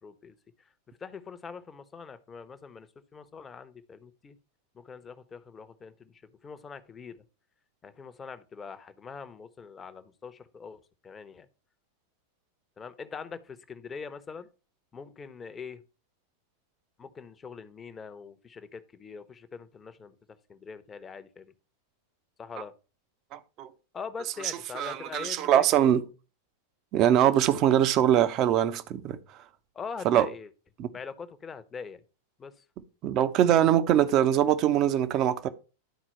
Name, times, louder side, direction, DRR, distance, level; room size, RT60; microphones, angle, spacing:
voice 1, 0.0-0.3 1.0-2.9 3.1-4.4 4.7-6.1 6.4-7.2 7.8-11.5 12.8-14.5 14.9-15.8 17.0-20.1 20.5-21.5 22.4-22.7 23.9-25.6 29.7-30.5 30.9-32.0 32.4-32.5, left 5 dB, 20° left, 0.9 m, -43 dB
voice 2, 23.3-23.7 24.7-26.1 26.9-29.2 30.0-30.3 30.8-30.9 33.0-35.5, right 11 dB, 35° right, 0.8 m, -23 dB
11.5 x 4.4 x 4.4 m
figure-of-eight pair, 90°, 0 cm